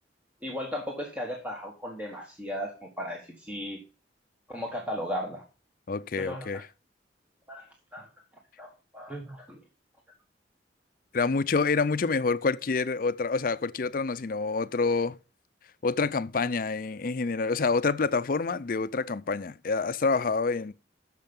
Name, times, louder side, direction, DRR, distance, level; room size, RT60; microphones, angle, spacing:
voice 1, 0.4-3.8 4.5-5.4 6.1-6.6 7.5-8.1 8.6-9.6, equal, 10° right, 1.4 m, -36 dB
voice 2, 5.9-6.6 11.1-15.2 15.8-20.7, left 4 dB, 50° left, 0.5 m, -27 dB
10.0 x 6.7 x 5.3 m
head